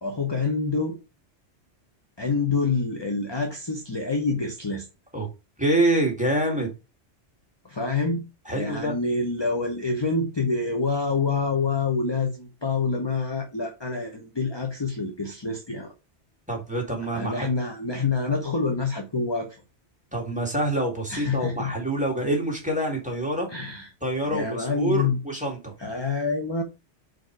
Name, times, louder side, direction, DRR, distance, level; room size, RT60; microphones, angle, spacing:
voice 1, 0.0-1.0 2.2-4.9 7.6-8.2 8.5-15.9 17.1-19.6 21.1-21.7 23.5-23.9 24.3-25.2 25.8-26.6, left 4 dB, 25° left, 0.9 m, -27 dB
voice 2, 5.6-6.7 8.5-9.0 16.5-17.5 20.1-23.5 24.0-25.7, right 1 dB, 5° right, 2.2 m, -26 dB
4.6 x 4.6 x 4.6 m
omnidirectional pair, 1.2 m